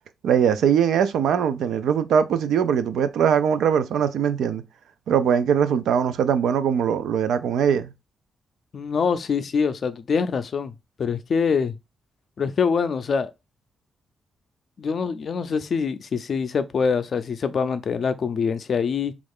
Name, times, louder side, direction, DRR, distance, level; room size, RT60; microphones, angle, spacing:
voice 1, 0.2-4.6 5.1-7.9, right 8 dB, 85° right, 0.3 m, -21 dB
voice 2, 8.7-10.7 11.0-11.8 12.4-13.3 14.8-19.1, left 5 dB, 55° left, 0.4 m, -24 dB
3.1 x 2.4 x 3.4 m
cardioid pair, 100°, 0 cm